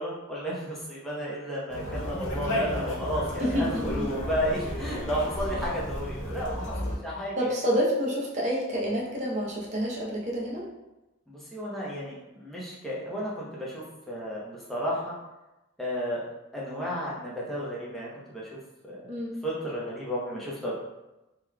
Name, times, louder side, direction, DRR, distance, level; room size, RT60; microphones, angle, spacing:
voice 1, 0.0-7.6 11.3-15.2 15.8-16.2 16.5-18.6 18.8-19.1 19.4-20.8, equal, ahead, -7 dB, 0.7 m, -33 dB
Conversation, 1.7-7.0, equal, 65° left, 0.7 m, -32 dB
voice 2, 3.4-3.8 7.4-10.7 19.1-19.4, equal, 35° right, -3 dB, 0.7 m, -28 dB
3.8 x 3.0 x 2.2 m, 0.98 s
head